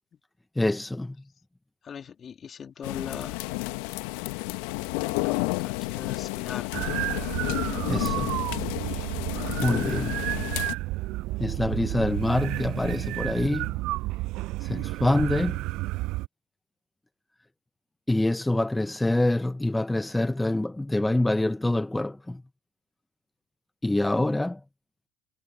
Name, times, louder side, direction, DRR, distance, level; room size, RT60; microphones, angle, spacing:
voice 1, 0.6-1.2 7.9-8.3 9.6-10.2 11.4-13.8 14.6-15.6 18.1-22.4 23.8-24.6, left 1 dB, 10° left, 0.8 m, -26 dB
voice 2, 1.9-3.4 4.8-6.8, left 7 dB, 45° left, 2.7 m, -40 dB
sound 1, 2.8-10.7, left 24 dB, 75° left, 1.4 m, -31 dB
sound 2, 6.7-16.3, right 19 dB, 65° right, 0.5 m, -31 dB
hypercardioid pair, 65°, 0 cm